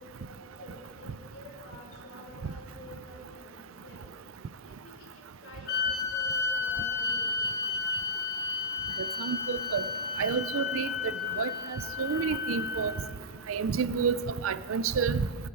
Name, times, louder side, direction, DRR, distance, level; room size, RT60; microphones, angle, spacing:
voice 1, 0.0-4.2 4.7-7.5, left 1 dB, 70° left, -3 dB, 3.2 m, -49 dB
sound 1, 5.7-13.2, left 4 dB, 50° left, 1.3 m, -32 dB
voice 2, 9.2-9.8 10.2-10.9 11.4-12.9 13.5-14.2 14.4-15.3, right 6 dB, 85° right, 16 dB, 0.5 m, -29 dB
15.5 x 10.5 x 4.6 m, 2.4 s
head